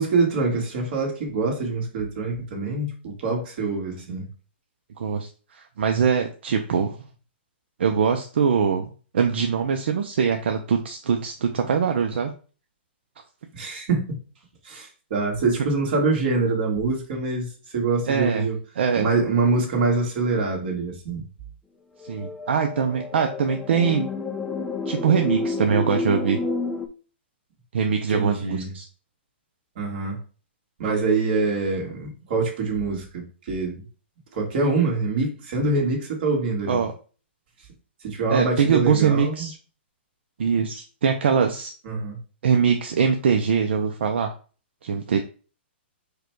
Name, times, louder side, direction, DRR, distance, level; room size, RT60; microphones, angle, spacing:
voice 1, 0.0-4.3 13.5-14.2 14.6-18.6 18.9-21.2 28.1-28.7 29.7-30.2 30.8-33.8 34.3-36.8 38.0-39.5 41.8-42.2, right 3 dB, 45° right, 1.7 m, -25 dB
voice 2, 5.0-7.0 7.8-12.3 18.1-18.4 18.8-19.1 22.0-24.1 24.9-26.4 27.7-28.9 36.7-36.9 38.3-39.6 40.4-41.7 42.4-44.3 44.8-45.2, right 6 dB, 70° right, 0.6 m, -22 dB
sound 1, 22.0-26.9, left 3 dB, 5° left, 0.3 m, -30 dB
4.8 x 2.3 x 4.5 m
hypercardioid pair, 160°, 6 cm